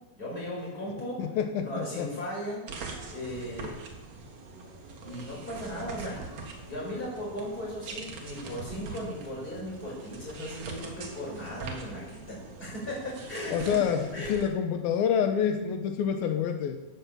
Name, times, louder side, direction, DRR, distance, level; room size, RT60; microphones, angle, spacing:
voice 1, 0.2-1.3 1.6-2.6 3.1-3.8 5.0-6.2 6.6-13.8 14.1-14.4, equal, 15° left, -4 dB, 6.3 m, -37 dB
voice 2, 1.2-2.1 13.5-16.8, left 8 dB, 90° left, 6 dB, 2.1 m, -27 dB
sound 1, 2.7-14.5, right 3 dB, 60° right, 1.8 m, -43 dB
15.5 x 9.3 x 7.4 m, 1.0 s
omnidirectional pair, 5.8 m